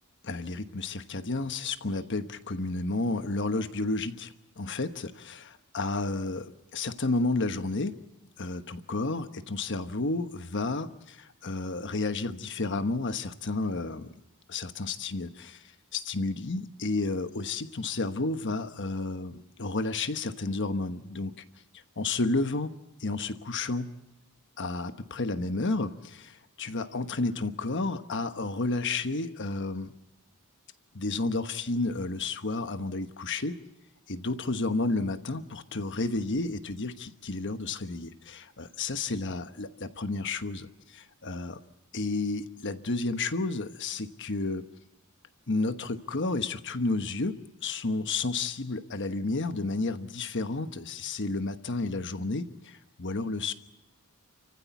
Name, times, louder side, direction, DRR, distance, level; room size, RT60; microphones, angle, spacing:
voice 1, 0.2-8.0 8.4-14.1 14.5-15.6 15.9-21.3 22.0-22.7 23.0-23.9 24.6-29.9 30.9-33.6 34.1-41.6 41.9-44.6 45.5-53.5, left 3 dB, 55° left, 9 dB, 1.2 m, -31 dB
29.5 x 15.0 x 8.3 m, 0.89 s
head